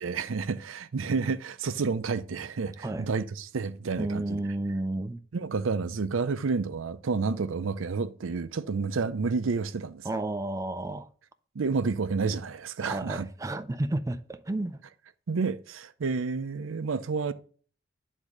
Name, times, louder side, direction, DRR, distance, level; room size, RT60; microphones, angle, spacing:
voice 1, 0.0-4.4 5.3-10.0 11.5-13.3 15.3-17.3, right 4 dB, 80° right, 0.5 m, -30 dB
voice 2, 4.0-5.2 10.0-11.1 12.8-14.8, right 2 dB, 15° right, 0.4 m, -31 dB
9.9 x 3.6 x 6.5 m
head